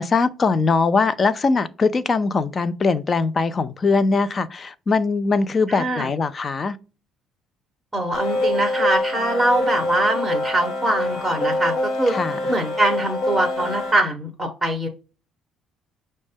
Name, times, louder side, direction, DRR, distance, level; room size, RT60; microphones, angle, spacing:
voice 1, 0.0-6.8 12.1-12.5, left 4 dB, 25° left, 0.3 m, -21 dB
voice 2, 5.7-6.1 7.9-12.1 12.5-14.9, right 1 dB, 5° right, 0.8 m, -23 dB
sound 1, 8.1-13.9, left 1 dB, 55° left, 0.7 m, -25 dB
6.2 x 2.1 x 3.4 m
cardioid pair, 160°, 0 cm